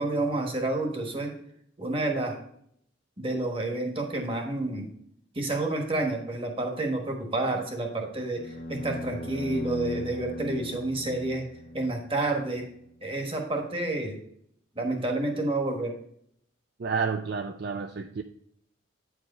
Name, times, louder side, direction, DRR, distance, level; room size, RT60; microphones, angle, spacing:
voice 1, 0.0-1.3 1.8-2.4 3.2-4.9 5.3-11.5 11.7-12.7 13.0-14.2 14.7-15.9, right 2 dB, 25° right, 1.3 m, -29 dB
sound 1, 8.3-12.6, left 1 dB, 60° left, 1.2 m, -37 dB
voice 2, 16.8-18.2, right 5 dB, 50° right, 0.4 m, -30 dB
9.2 x 4.8 x 4.2 m
head